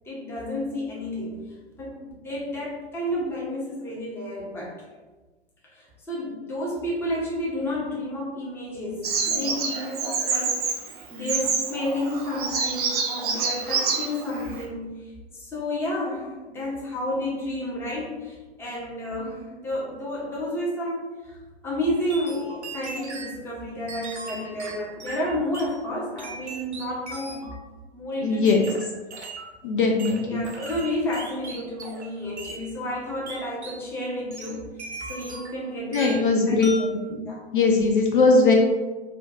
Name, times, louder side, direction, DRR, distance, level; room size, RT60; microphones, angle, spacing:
voice 1, 0.1-1.4 1.8-4.8 5.7-10.6 11.1-21.4 21.6-27.5 27.9-28.4 30.1-34.6 35.0-36.6 37.3-37.4, left 1 dB, 5° left, -5 dB, 0.6 m, -31 dB
Bird vocalization bird call bird song, 9.0-14.6, right 5 dB, 35° right, 0.4 m, -27 dB
sound 1, 22.1-23.4 23.9-25.7 26.2-27.6 28.4-29.5 30.0-32.1 32.4-32.6 33.3-33.8 34.3-35.6 35.9-36.3 36.6-37.0, right 3 dB, 80° right, 0.7 m, -38 dB
voice 2, 28.2-28.6 29.6-30.4 35.9-36.7 37.1-37.2 37.5-38.5, left 3 dB, 50° left, 1 dB, 0.4 m, -20 dB
2.5 x 2.2 x 3.6 m, 1.2 s
figure-of-eight pair, 105°, 33 cm